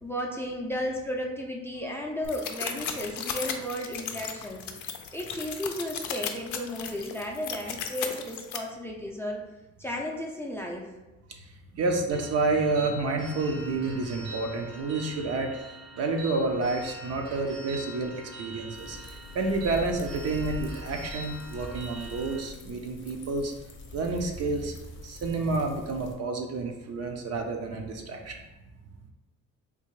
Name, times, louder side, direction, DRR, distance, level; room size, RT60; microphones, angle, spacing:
voice 1, 0.0-4.7 5.1-9.4 9.8-10.9, equal, 10° left, -1 dB, 0.4 m, -34 dB
sound 1, 2.2-8.6, left 8 dB, 75° left, 0.5 m, -36 dB
voice 2, 11.4-15.5 16.0-23.5 23.9-24.8 25.0-28.4, right 3 dB, 55° right, 3 dB, 0.6 m, -29 dB
sound 2, 12.1-22.4, equal, 80° right, 1.1 m, -44 dB
sound 3, 18.7-26.1, left 2 dB, 40° left, 0.8 m, -43 dB
3.6 x 2.5 x 3.1 m, 1.1 s
cardioid pair, 90°, 30 cm